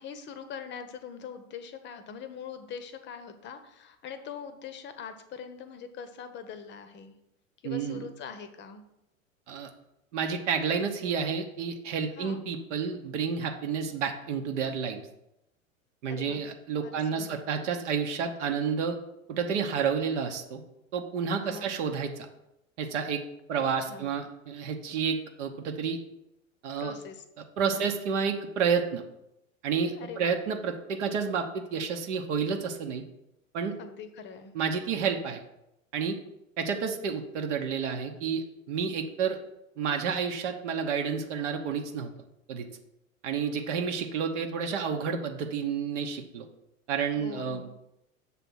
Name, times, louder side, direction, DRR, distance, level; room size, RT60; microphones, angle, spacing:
voice 1, 0.0-7.1 7.6-8.8 12.2-12.4 16.1-16.4 16.8-17.4 21.4-21.7 23.8-24.2 26.8-27.2 27.7-27.9 30.0-30.4 33.8-34.5 47.2-47.7, left 6 dB, 25° left, 10 dB, 0.8 m, -42 dB
voice 2, 7.6-8.1 9.5-9.7 10.1-15.1 16.0-19.0 19.3-20.6 20.9-22.3 22.8-23.2 23.5-26.0 26.6-27.0 27.6-29.0 29.6-33.0 33.5-33.7 34.5-35.4 35.9-36.1 36.6-39.4 39.8-42.1 42.5-42.7 43.2-46.5 46.9-47.6, right 6 dB, 60° right, 4 dB, 0.9 m, -30 dB
7.0 x 3.4 x 6.1 m, 0.85 s
hypercardioid pair, 90°, 41 cm